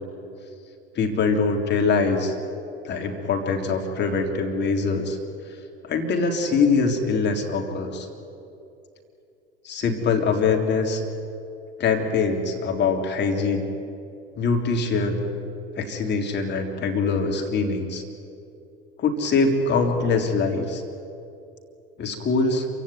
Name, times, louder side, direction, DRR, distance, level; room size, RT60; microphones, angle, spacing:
voice 1, 1.0-2.4 2.8-5.2 5.8-8.1 9.6-11.0 11.8-13.7 14.4-15.2 15.8-18.0 19.0-20.8 22.0-22.7, left 4 dB, 35° left, 2 dB, 3.5 m, -23 dB
27.0 x 16.5 x 9.5 m, 2.7 s
figure-of-eight pair, 70°, 30 cm